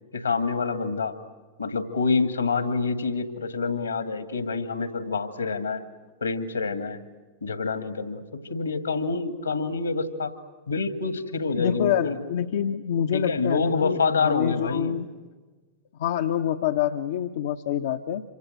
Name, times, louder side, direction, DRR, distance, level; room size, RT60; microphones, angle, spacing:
voice 1, 0.1-1.2 1.6-5.8 6.2-7.0 7.4-10.4 10.7-12.2 13.1-15.0, left 4 dB, 75° left, 9 dB, 2.1 m, -27 dB
voice 2, 11.6-15.1 16.0-18.2, left 10 dB, 60° left, 5 dB, 0.9 m, -26 dB
27.0 x 25.0 x 8.0 m, 1.3 s
figure-of-eight pair, 90°, 0 cm